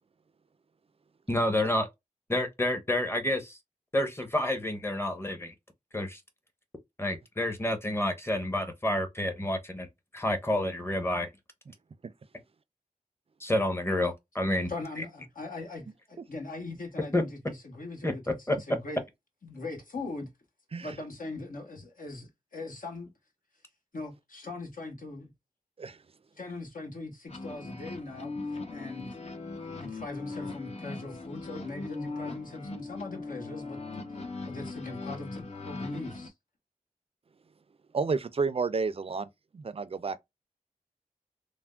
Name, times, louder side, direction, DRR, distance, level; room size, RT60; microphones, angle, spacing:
voice 1, 1.3-1.9 2.3-3.6 3.9-5.5 5.9-6.2 7.0-9.9 10.1-11.3 13.4-14.7 15.0-15.1 17.1-17.2 18.0-18.1 18.5-18.6, left 1 dB, 15° left, 0.9 m, -29 dB
voice 2, 14.7-19.0 19.4-20.3 20.8-23.1 23.9-25.3 26.4-28.4 28.7-29.2 29.8-34.0 34.5-36.3, left 3 dB, 70° left, 1.1 m, -40 dB
sound 1, 27.3-36.3, left 3 dB, 45° left, 0.7 m, -39 dB
voice 3, 37.9-40.2, right 4 dB, 40° right, 0.4 m, -31 dB
3.3 x 2.1 x 2.3 m
cardioid pair, 45°, 15 cm